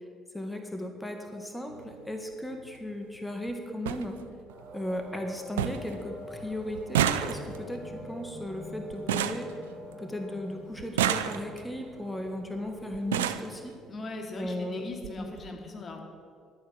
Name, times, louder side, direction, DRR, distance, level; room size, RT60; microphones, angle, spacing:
voice 1, 0.3-4.2 4.7-9.5 10.0-13.7 14.4-14.9 15.2-15.3, left 1 dB, 10° left, 4 dB, 2.0 m, -36 dB
sound 1, 1.7-1.9 3.2-3.3 3.5-3.6 3.9-4.0 4.5-5.0 5.2-5.3 5.6-6.0 6.2-10.2 10.8-11.8 12.6-12.7 12.9-13.5 14.5-14.6 14.9-15.1 15.4-15.5, right 10 dB, 85° right, 0.5 m, -30 dB
sound 2, 4.5-13.0, equal, 55° right, 3.0 m, -47 dB
voice 2, 13.9-16.0, left 2 dB, 40° left, 2 dB, 2.8 m, -39 dB
12.0 x 9.5 x 7.9 m, 2.3 s
hypercardioid pair, 60°, 0 cm